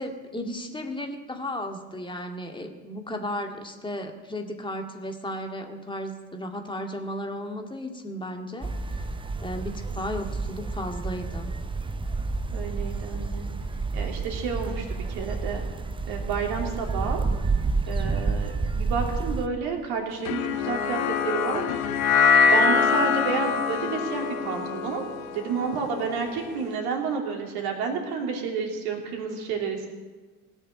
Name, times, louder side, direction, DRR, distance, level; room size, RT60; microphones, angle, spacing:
voice 1, 0.0-8.7 9.0-9.1 9.4-11.5, left 1 dB, 10° left, 3 dB, 2.1 m, -34 dB
sound 1, 8.6-19.5, right 4 dB, 10° right, 0.7 m, -30 dB
voice 2, 12.5-13.5 13.9-15.6 16.1-17.3 17.9-21.6 22.3-25.0 25.3-29.9, right 5 dB, 60° right, 2 dB, 3.0 m, -30 dB
sound 2, 20.3-26.6, left 6 dB, 70° left, 1.2 m, -24 dB
18.0 x 6.6 x 9.6 m, 1.3 s
figure-of-eight pair, 65°, 43 cm